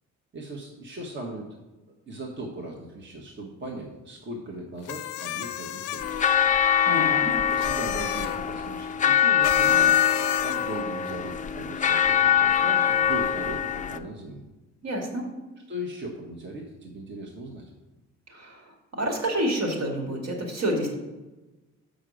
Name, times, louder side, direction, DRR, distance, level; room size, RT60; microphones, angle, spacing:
voice 1, 0.3-1.5 2.1-6.3 7.5-10.0 10.4-14.4 15.7-17.7, right 1 dB, 40° right, -1 dB, 1.3 m, -38 dB
sound 1, 4.9-6.3 7.5-8.4 9.4-10.8, left 12 dB, 85° left, 0.5 m, -33 dB
sound 2, 6.0-14.0, left 9 dB, 25° left, 0.4 m, -23 dB
voice 2, 6.8-7.3 14.8-15.2 18.3-18.6 19.0-20.9, right 1 dB, 60° right, 0 dB, 2.2 m, -28 dB
6.3 x 5.1 x 6.3 m, 1.1 s
cardioid pair, 90°, 30 cm